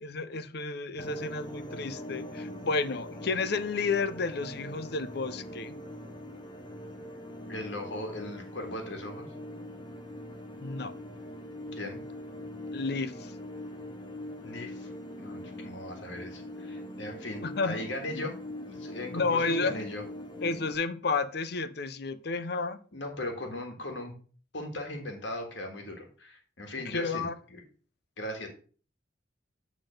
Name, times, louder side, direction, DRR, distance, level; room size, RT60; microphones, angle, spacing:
voice 1, 0.0-5.8 10.6-10.9 12.7-13.3 17.4-17.8 18.1-18.2 19.1-19.7 20.4-22.8 26.9-27.4, left 4 dB, 60° left, 0.6 m, -31 dB
sound 1, 1.0-20.7, left 1 dB, 25° left, 0.9 m, -42 dB
voice 2, 7.5-9.3 11.7-12.0 14.4-14.9 15.2-18.4 18.7-20.0 22.9-24.2 24.5-27.6 28.2-28.5, left 1 dB, 75° left, 1.7 m, -38 dB
9.0 x 3.7 x 5.1 m
head